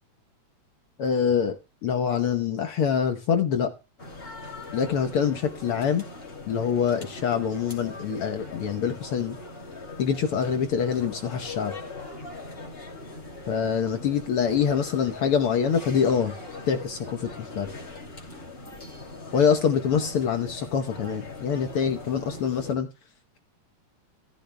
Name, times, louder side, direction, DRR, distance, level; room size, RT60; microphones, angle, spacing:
voice 1, 1.0-3.7 4.7-6.0 6.5-9.4 10.0-11.7 13.5-16.3 16.7-17.7 19.3-22.9, left 7 dB, 65° left, 7 dB, 1.5 m, -25 dB
sound 1, 4.0-22.7, left 2 dB, 20° left, 2.7 m, -40 dB
15.5 x 14.0 x 2.2 m, 0.28 s
omnidirectional pair, 3.4 m